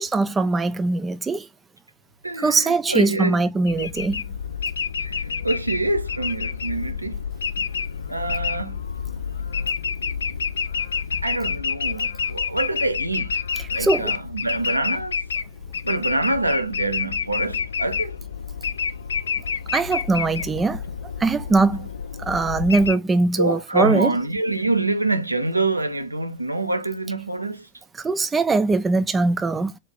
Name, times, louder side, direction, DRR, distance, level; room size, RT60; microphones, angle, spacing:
voice 1, 0.0-1.5 2.4-4.2 13.6-14.1 19.7-20.8 21.2-21.9 22.2-24.1 28.0-29.7, right 3 dB, 15° right, 0.5 m, -21 dB
voice 2, 2.2-3.4 5.0-7.2 8.1-8.8 11.2-13.4 13.7-15.2 15.8-18.2 23.4-27.7, right 2 dB, 85° right, 0.5 m, -25 dB
sound 1, 3.7-23.0, left 6 dB, 70° left, 0.4 m, -29 dB
3.7 x 2.5 x 3.6 m
figure-of-eight pair, 90°, 0 cm